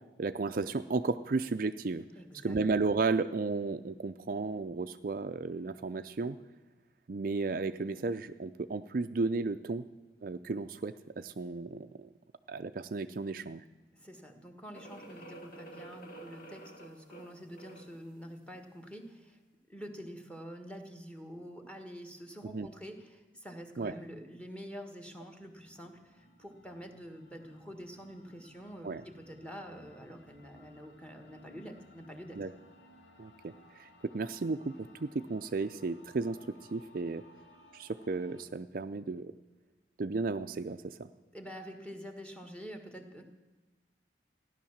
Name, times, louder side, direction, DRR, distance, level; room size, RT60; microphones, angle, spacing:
voice 1, 0.2-2.0 2.4-6.4 7.1-9.8 10.2-12.1 12.5-13.6 22.4-22.7 23.8-23.9 28.8-29.0 32.4-32.5 33.2-33.9 34.1-37.2 37.7-39.3 40.0-41.1, right 3 dB, 50° right, 9 dB, 0.4 m, -34 dB
voice 2, 2.2-2.6 13.9-19.4 19.7-32.4 41.3-43.2, equal, 5° left, 6 dB, 1.5 m, -47 dB
sound 1, 14.7-18.0, right 2 dB, 50° left, 1.7 m, -50 dB
sound 2, 25.0-38.4, left 1 dB, 90° left, 2.1 m, -61 dB
15.5 x 11.0 x 7.2 m, 1.2 s
head